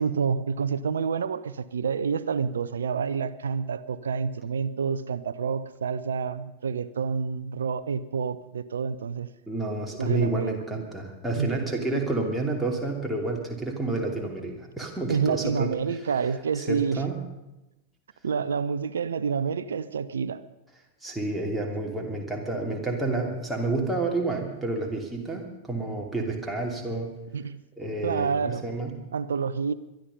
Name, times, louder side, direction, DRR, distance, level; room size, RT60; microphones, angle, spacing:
voice 1, 0.0-9.3 10.0-10.6 11.3-11.5 15.1-17.0 18.2-20.4 27.3-27.6 28.0-28.6 29.1-29.7, right 6 dB, 70° right, 0.6 m, -28 dB
voice 2, 9.5-16.0 16.5-17.2 21.0-27.1 27.8-29.0, right 2 dB, 5° right, 2.9 m, -29 dB
22.5 x 12.0 x 5.5 m
figure-of-eight pair, 90°, 0 cm